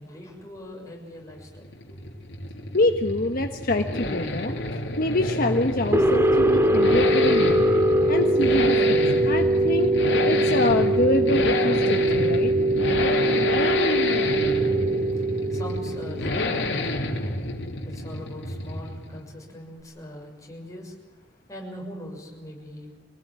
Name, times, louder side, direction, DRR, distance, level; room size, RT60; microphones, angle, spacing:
voice 1, 0.0-2.0 14.6-23.0, left 1 dB, 20° left, -1 dB, 6.6 m, -42 dB
sound 1, 1.3-19.3, left 2 dB, 70° left, 3.3 m, -29 dB
voice 2, 2.7-4.5 5.0-7.6 8.1-10.0 10.2-12.5, left 2 dB, 55° left, 5 dB, 1.3 m, -25 dB
sound 2, 5.9-16.8, right 1 dB, 15° right, 2.4 m, -22 dB
25.5 x 19.5 x 8.9 m, 1.2 s
head